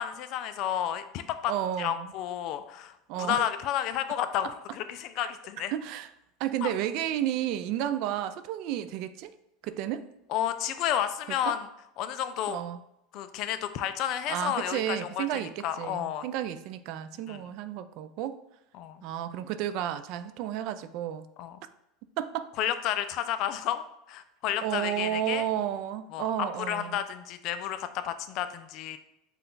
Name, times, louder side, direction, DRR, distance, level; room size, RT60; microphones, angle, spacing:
voice 1, 0.0-1.5 1.8-5.7 6.6-6.7 10.3-11.7 12.0-12.6 13.1-16.2 17.3-17.4 18.7-19.0 21.4-21.6 22.6-25.5 26.1-29.0, left 10 dB, 50° left, 11 dB, 0.3 m, -31 dB
voice 2, 1.5-2.1 3.1-3.5 5.2-5.3 5.7-6.1 6.4-9.3 9.6-10.1 11.4-11.6 12.5-12.8 14.3-18.4 19.0-21.3 22.2-22.5 24.6-27.0, right 11 dB, 55° right, 12 dB, 0.3 m, -32 dB
5.5 x 2.3 x 3.8 m, 0.83 s
supercardioid pair, 140°, 0 cm